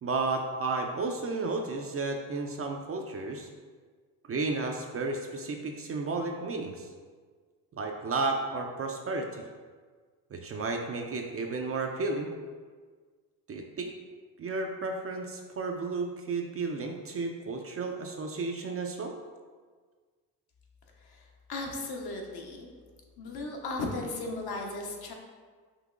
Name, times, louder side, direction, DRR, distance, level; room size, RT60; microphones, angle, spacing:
voice 1, 0.0-3.5 4.3-6.9 7.8-9.4 10.3-12.3 13.5-13.9 14.4-19.1, right 3 dB, 30° right, 3 dB, 0.4 m, -33 dB
voice 2, 21.5-22.7 23.2-25.1, left 2 dB, 55° left, 1 dB, 0.9 m, -36 dB
5.5 x 2.8 x 2.4 m, 1.5 s
supercardioid pair, 60°, 46 cm